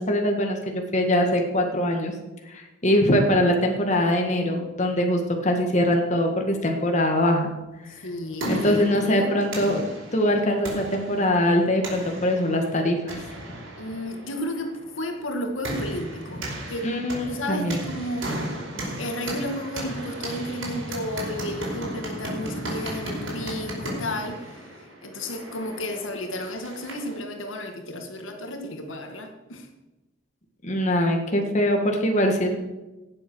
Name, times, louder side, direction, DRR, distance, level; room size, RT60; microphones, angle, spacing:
voice 1, 0.0-2.1 2.5-7.5 8.5-13.1 16.8-17.8 30.6-32.6, left 1 dB, 35° left, 2 dB, 1.8 m, -23 dB
voice 2, 7.9-9.4 13.8-16.9 17.2-18.5 19.0-24.6 25.0-29.7, left 1 dB, 75° left, 4 dB, 1.9 m, -33 dB
sound 1, 8.0-27.2, right 1 dB, 75° right, 5.0 m, -35 dB
18.0 x 7.6 x 6.3 m, 1.1 s
head